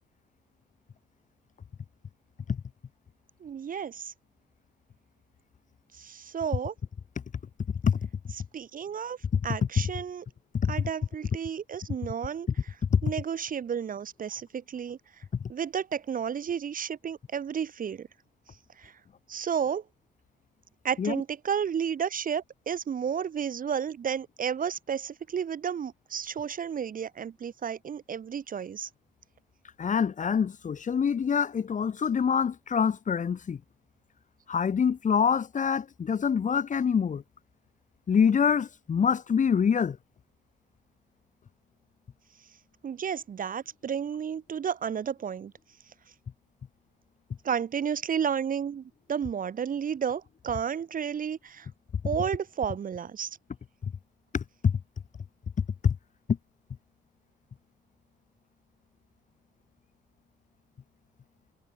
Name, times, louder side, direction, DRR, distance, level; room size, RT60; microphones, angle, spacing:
voice 1, 3.4-4.1 6.0-6.7 8.5-9.2 9.4-10.2 10.7-12.7 13.0-15.0 15.5-18.1 18.8-18.9 19.3-19.8 20.8-28.9 42.8-45.5 47.4-51.7 52.0-53.3, right 7 dB, 45° right, 1.0 m, -32 dB
voice 2, 29.8-33.6 34.5-37.2 38.1-40.0 54.3-54.7 55.8-55.9, left 7 dB, 40° left, 1.0 m, -25 dB
cardioid pair, 90°, 20 cm